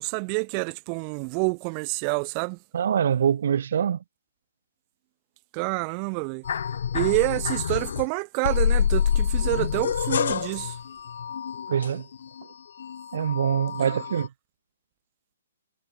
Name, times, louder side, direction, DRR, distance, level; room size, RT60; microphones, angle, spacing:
voice 1, 0.0-2.6 5.5-6.4 6.9-10.8 13.7-14.0, right 40 dB or more, 35° right, 2.9 m, -28 dB
voice 2, 2.7-4.0 11.7-12.1 13.1-14.3, right 8 dB, 60° right, 0.9 m, -24 dB
sound 1, 6.4-8.1 8.4-12.4 12.8-14.3, left 8 dB, 60° left, 1.3 m, -27 dB
figure-of-eight pair, 125°, 0 cm